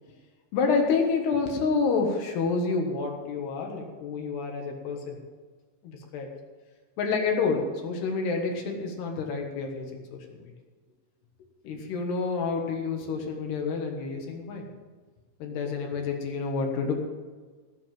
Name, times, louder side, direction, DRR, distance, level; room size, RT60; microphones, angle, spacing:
voice 1, 0.5-5.2 5.8-6.3 7.0-10.5 11.6-14.7 15.4-16.9, left 4 dB, 65° left, 2 dB, 3.2 m, -28 dB
17.5 x 7.0 x 7.4 m, 1.4 s
omnidirectional pair, 5.6 m